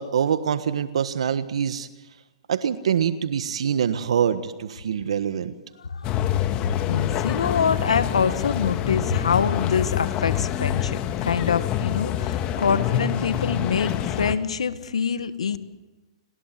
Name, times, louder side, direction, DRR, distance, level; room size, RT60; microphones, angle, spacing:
voice 1, 0.0-1.9 2.5-5.5, right 8 dB, 75° right, 11 dB, 1.4 m, -24 dB
sound 1, 6.0-14.3, left 11 dB, 30° left, 1.9 m, -26 dB
voice 2, 6.9-15.6, left 6 dB, 90° left, 12 dB, 1.8 m, -25 dB
30.0 x 20.5 x 7.7 m, 1.2 s
hypercardioid pair, 135°, 3 cm